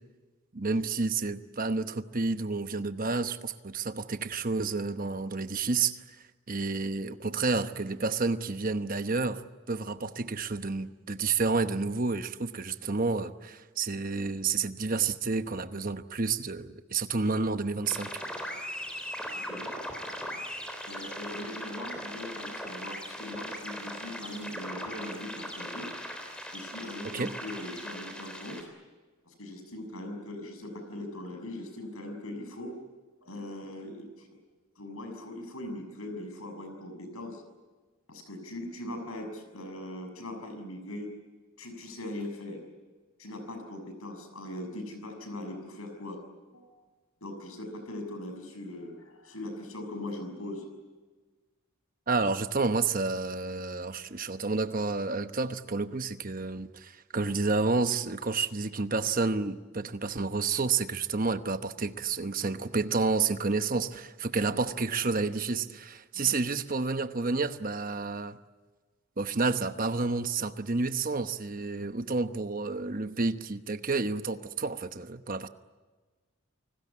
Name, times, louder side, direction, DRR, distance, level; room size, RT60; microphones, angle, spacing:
voice 1, 0.5-6.2 6.5-9.4 9.7-18.1 27.1-27.3 52.1-68.4 69.2-75.5, right 4 dB, 40° right, 1.0 m, -30 dB
sound 1, 17.8-28.6, equal, 5° left, 3.6 m, -39 dB
voice 2, 20.9-25.9 26.5-28.6 29.2-32.7 33.2-34.3 34.8-37.4 38.1-41.1 41.6-42.6 43.2-46.2 46.5-46.7 47.2-50.6 64.4-64.5 66.1-66.4, left 1 dB, 75° left, 6.4 m, -40 dB
28.5 x 19.5 x 8.5 m
head